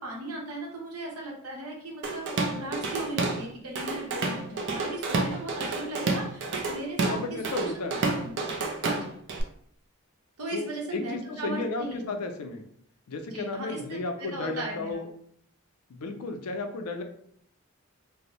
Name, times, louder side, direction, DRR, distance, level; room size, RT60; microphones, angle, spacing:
voice 1, 0.0-7.2 7.6-7.8 8.2-8.3 8.8-9.1 10.4-12.1 13.3-15.0, right 1 dB, 85° right, -1 dB, 0.8 m, -37 dB
Drum kit / Drum, 2.0-3.4 3.8-9.4, right 3 dB, 50° right, 0.4 m, -29 dB
voice 2, 7.1-8.1 10.5-12.7 13.1-15.1 15.9-17.0, left 3 dB, 85° left, 5 dB, 0.4 m, -33 dB
2.6 x 2.0 x 2.9 m, 0.66 s
head